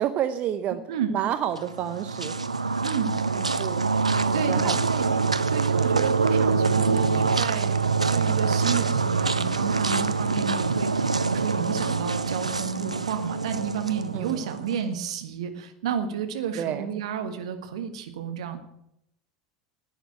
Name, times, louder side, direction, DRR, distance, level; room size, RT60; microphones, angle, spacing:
voice 1, 0.0-0.8 1.1-2.3 3.4-3.9 4.3-4.8 14.1-14.5 16.5-16.9, right 10 dB, 45° right, 11 dB, 0.8 m, -29 dB
voice 2, 0.9-1.2 2.8-3.2 4.3-18.6, right 7 dB, 70° right, 7 dB, 1.6 m, -32 dB
sound 1, 1.5-14.8, right 4 dB, 90° right, 0.6 m, -25 dB
11.0 x 9.1 x 9.3 m, 0.80 s
figure-of-eight pair, 75°, 3 cm